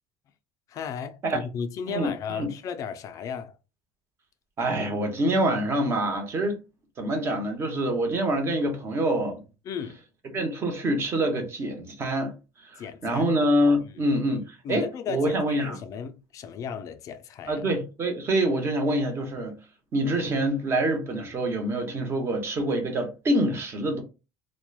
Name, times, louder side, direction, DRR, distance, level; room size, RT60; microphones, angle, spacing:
voice 1, 0.7-3.5 9.7-10.0 12.8-13.2 14.6-17.6, left 7 dB, 40° left, 0.3 m, -35 dB
voice 2, 1.9-2.5 4.6-6.6 7.0-9.4 10.3-12.3 12.6-15.8 17.5-19.6 19.9-24.0, right 1 dB, 30° right, 0.8 m, -26 dB
2.9 x 2.1 x 2.3 m
cardioid pair, 145°, 9 cm